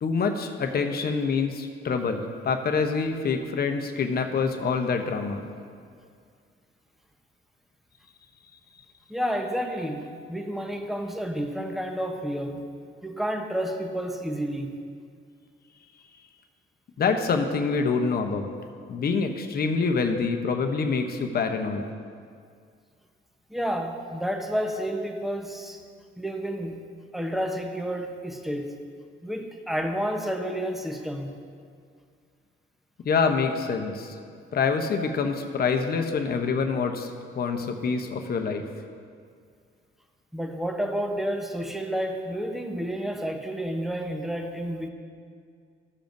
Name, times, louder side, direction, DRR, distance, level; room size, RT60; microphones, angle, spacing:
voice 1, 0.0-5.4 17.0-18.5 18.9-21.8 33.0-34.1 34.5-38.6, left 5 dB, 50° left, 5 dB, 0.8 m, -26 dB
voice 2, 9.1-12.6 13.0-14.7 23.5-25.8 26.2-26.8 27.1-28.8 29.2-31.3 40.3-44.9, equal, ahead, 4 dB, 0.8 m, -30 dB
14.5 x 7.0 x 2.6 m, 2.2 s
cardioid pair, 90°, 20 cm